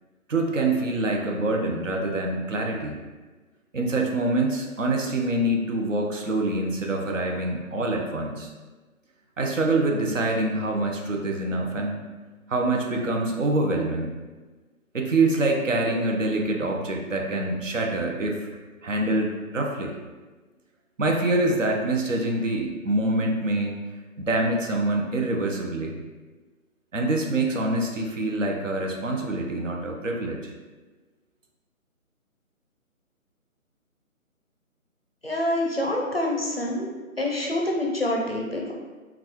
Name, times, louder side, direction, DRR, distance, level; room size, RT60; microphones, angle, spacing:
voice 1, 0.3-3.0 3.7-8.5 9.4-12.0 12.5-14.1 14.9-18.5 18.8-19.9 21.0-23.8 24.2-26.0 26.9-30.5, right 2 dB, 60° right, 1 dB, 0.6 m, -25 dB
voice 2, 35.2-36.9 37.2-38.7, left 1 dB, 45° left, -1 dB, 0.5 m, -26 dB
3.9 x 2.3 x 2.9 m, 1.3 s
hypercardioid pair, 175°, 43 cm